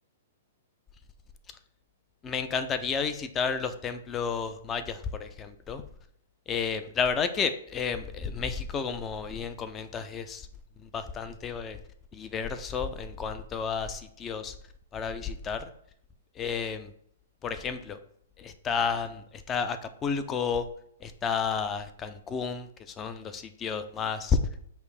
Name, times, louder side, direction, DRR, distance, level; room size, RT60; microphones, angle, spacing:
voice 1, 2.2-5.8 6.5-10.5 10.8-11.8 12.1-14.6 14.9-15.7 16.4-16.9 17.4-18.0 18.4-20.7 21.0-24.4, left 6 dB, 20° left, 10 dB, 0.4 m, -31 dB
5.3 x 2.0 x 4.8 m, 0.67 s
hypercardioid pair, 145°, 0 cm